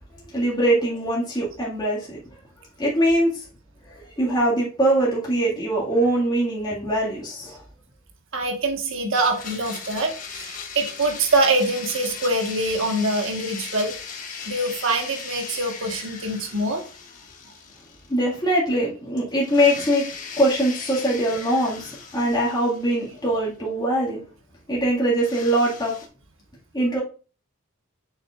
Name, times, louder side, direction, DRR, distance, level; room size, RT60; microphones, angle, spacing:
voice 1, 0.3-2.2 2.8-3.4 3.9-7.6 18.1-20.1 20.4-24.2 24.7-25.9 26.7-27.0, right 1 dB, 20° left, -6 dB, 1.9 m, -22 dB
voice 2, 8.3-13.9 14.5-16.8, right 2 dB, 65° right, 3 dB, 1.4 m, -24 dB
Domestic sounds home sounds, 9.1-18.3 18.6-18.7 19.4-23.4 25.2-26.1, left 6 dB, 40° left, 1.3 m, -38 dB
7.1 x 6.5 x 2.4 m, 0.36 s
head